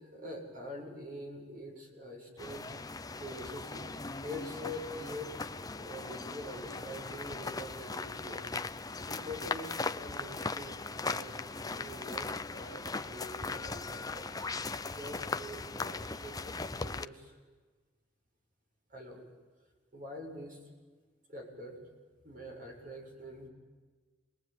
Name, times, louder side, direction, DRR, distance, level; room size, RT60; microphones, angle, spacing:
voice 1, 0.0-2.8 3.2-3.8 4.2-8.4 9.1-14.3 14.9-17.4 18.9-19.3 19.9-20.6 21.3-21.8 22.2-23.5, left 1 dB, 50° right, 1 dB, 7.6 m, -45 dB
sound 1, 2.4-17.0, left 3 dB, 20° left, 0.8 m, -39 dB
28.0 x 22.0 x 9.5 m, 1.4 s
head